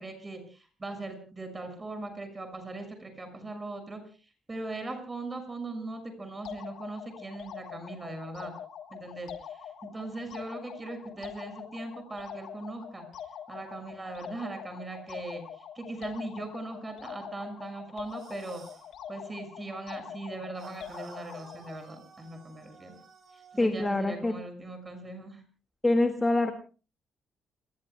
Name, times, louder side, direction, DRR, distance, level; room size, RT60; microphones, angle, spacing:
voice 1, 0.0-4.0 4.5-8.5 8.9-13.1 13.5-18.6 19.1-23.0 23.3-25.4, right 2 dB, 20° right, 6 dB, 6.3 m, -40 dB
sound 1, 6.5-21.8, left 9 dB, 70° left, 2.6 m, -44 dB
sound 2, 18.1-18.9 20.5-23.7, right 5 dB, 45° right, 7.7 m, -52 dB
voice 2, 23.6-24.3 25.8-26.5, left 2 dB, 15° left, 5 dB, 1.9 m, -25 dB
30.0 x 20.0 x 2.3 m, 0.36 s
cardioid pair, 125°, 0 cm